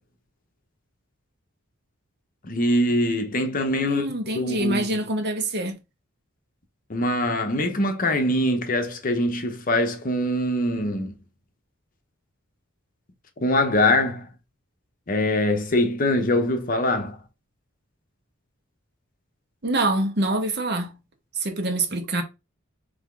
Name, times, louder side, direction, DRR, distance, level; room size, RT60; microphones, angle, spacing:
voice 1, 2.4-4.0 4.3-5.0 6.9-11.2 13.4-14.3 15.1-17.2, left 1 dB, 40° left, 0.8 m, -23 dB
voice 2, 3.8-5.8 19.6-20.9 21.4-22.2, right 2 dB, 50° right, 0.9 m, -25 dB
3.6 x 3.4 x 3.7 m
head